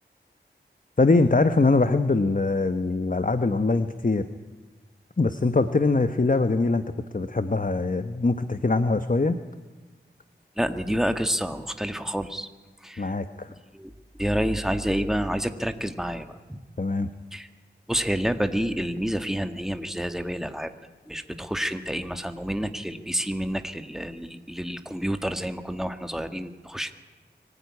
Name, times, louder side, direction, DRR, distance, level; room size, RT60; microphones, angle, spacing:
voice 1, 1.0-4.2 5.2-6.8 7.1-9.4 13.0-13.5 16.8-17.1, left 3 dB, 45° left, 10 dB, 1.1 m, -22 dB
voice 2, 10.6-12.5 12.8-13.1 13.7-13.9 14.2-16.6 17.3-17.5 17.9-20.7 21.1-26.9, equal, ahead, 8 dB, 1.7 m, -28 dB
24.5 x 15.5 x 9.7 m, 1.3 s
wide cardioid pair, 40°, 19 cm